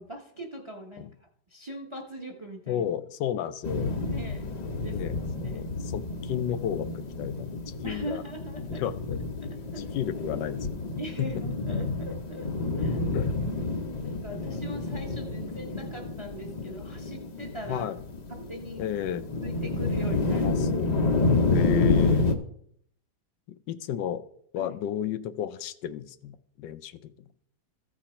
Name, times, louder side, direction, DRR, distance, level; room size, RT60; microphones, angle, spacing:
voice 1, 0.0-2.8 4.0-4.5 4.8-5.0 5.4-5.7 7.8-8.8 9.4-9.9 11.0-13.0 14.0-17.9 18.3-18.8 19.4-20.5 20.9-21.2 24.6-24.8, right 1 dB, 25° right, 2 dB, 0.7 m, -41 dB
voice 2, 2.7-3.9 4.9-8.2 8.7-9.2 9.7-10.7 11.2-11.3 13.1-13.3 16.6-16.7 17.7-18.0 18.8-19.3 20.3-21.0 21.5-22.3 23.5-24.2 24.5-27.1, left 10 dB, 90° left, 12 dB, 1.3 m, -33 dB
sound 1, 3.6-22.3, left 3 dB, 50° left, 0.4 m, -29 dB
14.5 x 5.0 x 4.3 m, 0.67 s
omnidirectional pair, 1.9 m